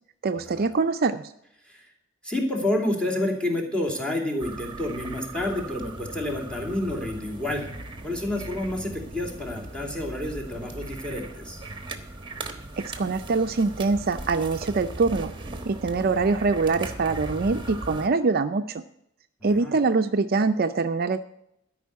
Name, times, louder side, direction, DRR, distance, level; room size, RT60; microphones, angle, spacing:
voice 1, 0.2-1.3 13.0-15.3 15.6-18.8 19.4-21.2, right 4 dB, 50° right, 9 dB, 0.5 m, -24 dB
voice 2, 2.2-7.7 8.0-11.6 19.4-19.8, left 1 dB, 5° left, 1 dB, 2.7 m, -29 dB
sound 1, 4.4-18.1, right 2 dB, 25° right, 1.3 m, -38 dB
13.0 x 5.5 x 9.2 m, 0.77 s
head